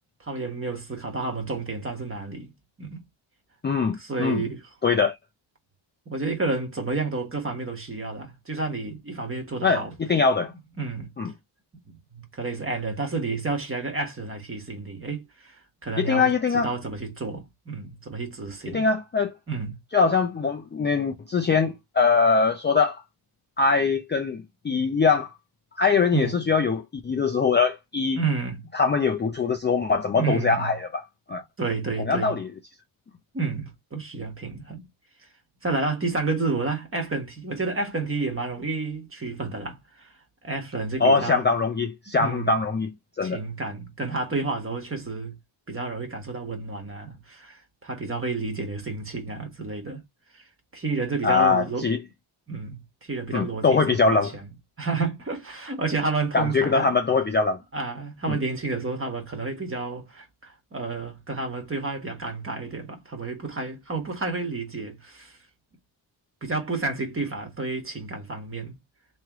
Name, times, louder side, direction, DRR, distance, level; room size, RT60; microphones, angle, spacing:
voice 1, 0.2-2.5 2.8-3.0 4.0-4.6 6.1-9.9 10.8-11.1 11.9-18.8 19.5-19.8 26.1-26.4 28.2-28.7 30.1-30.7 31.6-32.4 33.3-34.9 35.6-40.1 40.4-41.4 42.2-42.6 43.2-45.4 45.7-50.0 50.3-50.4 50.7-51.9 52.5-54.5 54.8-56.9 57.7-65.4 66.4-68.8, right 3 dB, 25° right, 1.4 m, -30 dB
voice 2, 3.6-4.4 4.8-5.2 9.6-10.5 11.2-11.3 16.0-16.7 18.7-19.3 19.9-23.0 23.6-25.3 25.8-28.2 28.7-31.0 31.3-31.4 32.0-32.5 41.0-43.4 51.2-52.0 53.3-54.3 56.3-57.6 58.3-58.4, left 4 dB, 20° left, 0.5 m, -22 dB
3.2 x 3.1 x 3.5 m
cardioid pair, 120°, 50 cm